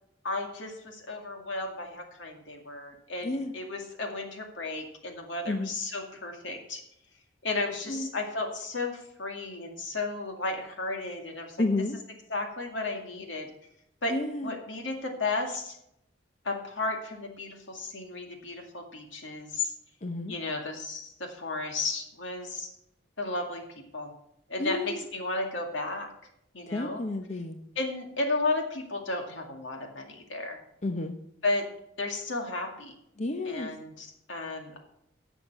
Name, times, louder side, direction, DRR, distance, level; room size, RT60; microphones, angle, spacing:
voice 1, 0.2-6.8 7.4-11.6 12.3-13.5 14.0-14.1 14.4-15.8 16.4-19.7 20.3-22.7 23.2-23.6 23.9-24.1 24.5-26.1 26.5-27.0 27.8-30.6 31.4-31.7 32.0-32.9 33.5-34.7, left 3 dB, 80° left, 3 dB, 2.2 m, -33 dB
voice 2, 11.6-12.0 14.1-14.5 20.0-20.3 24.6-25.0 26.7-27.6 30.8-31.2 33.2-33.7, left 2 dB, 35° left, 6 dB, 0.7 m, -31 dB
11.0 x 7.1 x 6.0 m, 0.78 s
head